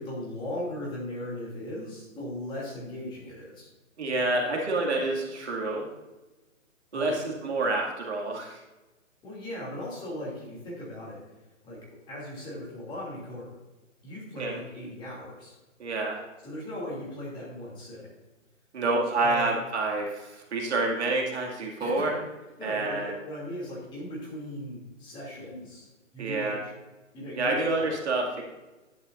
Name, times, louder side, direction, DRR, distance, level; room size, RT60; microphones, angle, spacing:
voice 1, 0.0-3.7 6.9-7.2 9.2-11.2 11.6-11.8 12.1-13.5 14.0-15.5 16.4-18.1 19.2-19.6 21.8-22.2 22.6-25.9 26.1-26.7 27.1-27.9, left 1 dB, 10° left, -5 dB, 2.8 m, -38 dB
voice 2, 4.0-5.9 6.9-8.6 14.4-14.5 15.8-16.2 18.7-22.2 22.6-23.1 26.2-26.6 27.4-28.4, right 2 dB, 55° right, 0 dB, 2.4 m, -28 dB
11.0 x 9.9 x 2.6 m, 1.1 s
hypercardioid pair, 150°, 40 cm